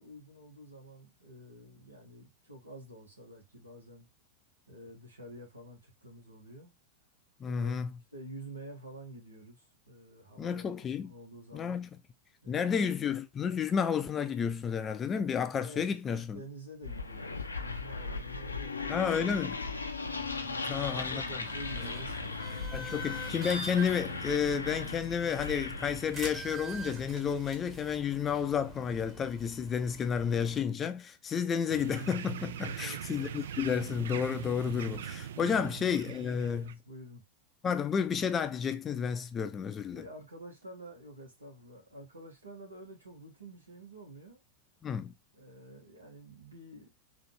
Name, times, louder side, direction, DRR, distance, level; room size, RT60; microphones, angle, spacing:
voice 1, 0.0-4.1 4.7-6.7 7.4-7.7 8.1-11.8 12.4-12.9 15.6-19.7 20.4-22.9 32.6-33.2 34.9-35.8 36.3-37.2 39.9-44.4 45.3-46.9, right 1 dB, 80° right, 1.4 m, -49 dB
voice 2, 7.4-7.9 10.4-11.1 11.5-11.9 12.5-16.4 18.9-19.6 20.7-21.2 22.7-36.8 37.6-40.0 44.8-45.1, left 7 dB, 25° left, 0.5 m, -31 dB
sound 1, 16.8-26.2, left 4 dB, 80° left, 0.5 m, -38 dB
sound 2, 20.0-30.6, right 1 dB, 25° right, 1.4 m, -45 dB
sound 3, 31.7-36.7, right 9 dB, 60° right, 0.3 m, -41 dB
4.1 x 2.7 x 3.2 m
figure-of-eight pair, 90°, 0 cm